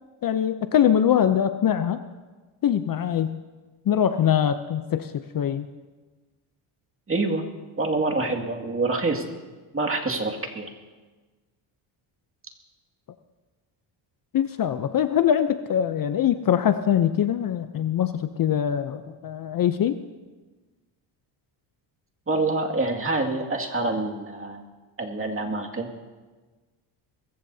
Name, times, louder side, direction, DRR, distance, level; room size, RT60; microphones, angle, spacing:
voice 1, 0.2-2.0 2.6-3.4 3.9-5.7 14.3-20.0, left 9 dB, 45° left, 11 dB, 0.6 m, -23 dB
voice 2, 7.1-7.5 7.8-9.2 9.7-10.7 22.3-24.6 25.0-25.9, right 2 dB, 25° right, 1 dB, 2.2 m, -26 dB
22.5 x 15.5 x 2.8 m, 1.3 s
cardioid pair, 85°, 50 cm